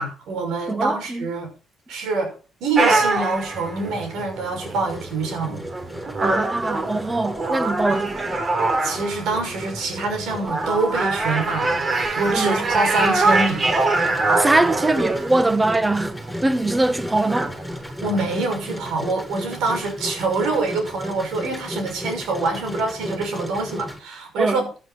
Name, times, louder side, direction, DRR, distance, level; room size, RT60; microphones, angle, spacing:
voice 1, 0.0-1.5 1.9-2.3 2.6-5.6 7.9-8.0 8.8-11.9 12.2-13.7 18.0-24.6, right 3 dB, 85° right, 6.2 m, -25 dB
voice 2, 0.7-1.3 6.2-8.4 12.3-12.7 14.4-17.5 24.4-24.7, right 2 dB, 15° right, 1.3 m, -22 dB
sound 1, 2.8-18.4, right 2 dB, 40° right, 3.4 m, -24 dB
Engine, 4.6-24.0, equal, ahead, 6.9 m, -35 dB
16.0 x 10.0 x 4.2 m
cardioid pair, 90°, 0 cm